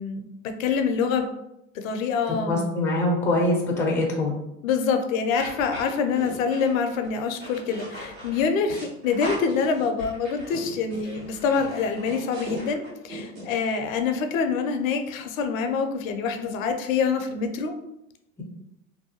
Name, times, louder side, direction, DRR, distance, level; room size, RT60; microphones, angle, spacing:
voice 1, 0.0-1.3 1.7-2.7 4.6-17.7, left 5 dB, 75° left, 6 dB, 0.5 m, -26 dB
voice 2, 2.5-4.3, left 1 dB, 5° left, 0 dB, 0.4 m, -23 dB
sound 1, 5.3-13.6, equal, 70° right, 1.3 m, -39 dB
2.6 x 2.2 x 2.7 m, 0.85 s
hypercardioid pair, 100°, 41 cm